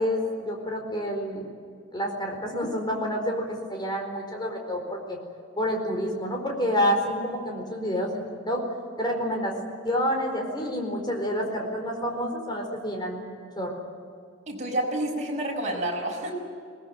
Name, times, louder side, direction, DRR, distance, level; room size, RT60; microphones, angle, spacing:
voice 1, 0.0-1.4 1.9-5.2 5.6-8.6 9.0-9.6 9.8-13.3 13.6-13.7, equal, 20° left, 2 dB, 4.4 m, -28 dB
voice 2, 14.5-16.3, right 1 dB, 35° right, -1 dB, 6.0 m, -29 dB
21.5 x 19.5 x 9.4 m, 2.4 s
head